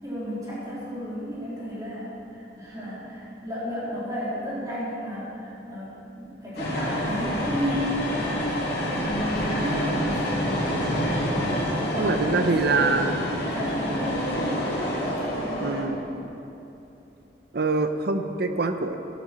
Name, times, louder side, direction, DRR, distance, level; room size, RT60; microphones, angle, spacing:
voice 1, 0.0-8.0 8.3-8.5 9.0-10.8 11.7-13.1 13.4-14.7 15.0-16.0, equal, 20° right, -9 dB, 3.4 m, -33 dB
sound 1, 6.6-15.8, equal, 60° left, 2.9 m, -27 dB
voice 2, 9.6-9.9 12.0-13.2 15.6-16.0 17.5-19.0, right 3 dB, 60° right, 7 dB, 0.7 m, -25 dB
14.0 x 12.0 x 4.3 m, 2.9 s
head